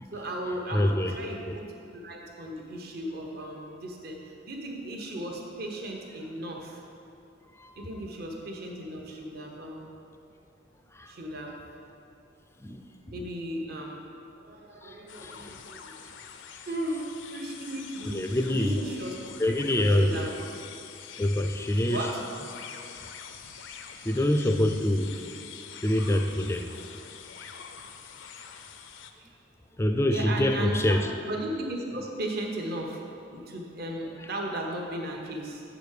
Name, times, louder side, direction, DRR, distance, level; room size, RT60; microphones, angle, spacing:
voice 1, 0.1-4.2 4.5-6.8 7.8-9.9 11.1-11.7 13.1-14.0 14.4-16.0 16.7-19.1 19.7-20.3 21.9-22.2 23.3-24.2 29.2-29.3 30.1-31.0 31.2-35.6, right 1 dB, 50° right, 0 dB, 1.0 m, -36 dB
voice 2, 0.7-1.2 1.5-1.6 7.6-7.7 10.9-11.1 12.6-12.8 13.1-13.2 14.8-15.5 18.1-18.8 19.4-20.3 21.2-22.1 24.0-25.2 25.8-26.7 29.8-31.0, left 1 dB, 15° left, 5 dB, 0.4 m, -25 dB
sound 1, 15.1-29.1, left 7 dB, 70° left, 0.5 m, -45 dB
7.4 x 5.1 x 6.5 m, 2.5 s
head